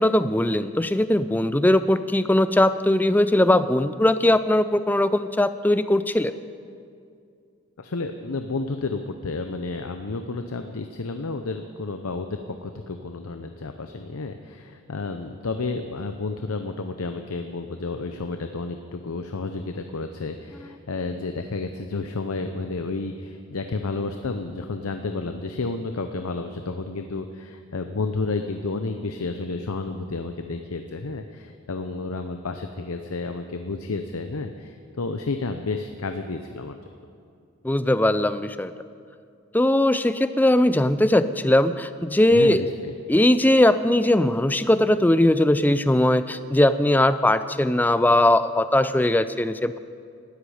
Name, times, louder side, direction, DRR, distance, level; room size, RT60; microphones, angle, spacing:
voice 1, 0.0-6.3 37.6-38.7 39.5-42.6 43.1-49.8, left 1 dB, 10° left, 13 dB, 0.3 m, -20 dB
voice 2, 7.8-36.8 42.3-42.9, left 3 dB, 85° left, 6 dB, 0.7 m, -31 dB
19.0 x 13.5 x 4.9 m, 2.4 s
head